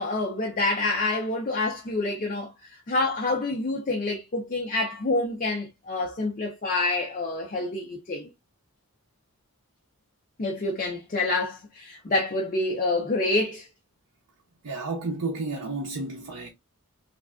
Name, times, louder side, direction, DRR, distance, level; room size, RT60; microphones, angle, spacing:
voice 1, 0.0-8.3 10.4-13.7, left 2 dB, 35° left, 0.5 m, -27 dB
voice 2, 14.6-16.5, right 3 dB, 85° right, 0.6 m, -31 dB
3.2 x 2.4 x 2.2 m
head